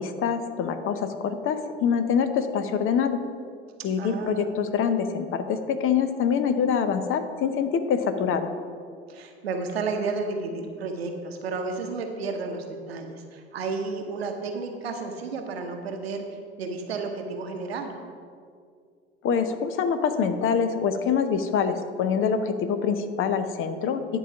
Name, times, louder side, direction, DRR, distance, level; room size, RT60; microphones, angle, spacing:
voice 1, 0.0-3.2 3.8-8.5 19.2-24.2, left 6 dB, 45° left, 10 dB, 0.7 m, -25 dB
voice 2, 4.0-4.5 9.1-16.2 16.6-18.0, right 4 dB, 85° right, 5 dB, 0.8 m, -32 dB
10.0 x 4.0 x 5.8 m, 2.2 s
hypercardioid pair, 65°, 30 cm